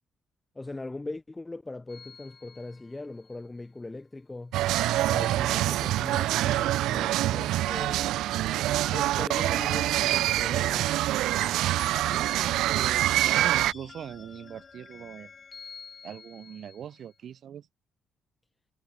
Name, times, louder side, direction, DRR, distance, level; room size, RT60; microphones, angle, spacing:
voice 1, 0.5-4.6 5.1-8.2 8.9-10.9, left 2 dB, 20° left, 1.0 m, -40 dB
sound 1, 1.9-3.4 11.4-17.1, left 5 dB, 40° left, 4.5 m, -48 dB
sound 2, 4.5-13.7, right 15 dB, 85° right, 0.7 m, -25 dB
voice 2, 12.1-15.3 16.0-17.7, right 9 dB, 65° right, 7.5 m, -41 dB
cardioid pair, 90°, 0 cm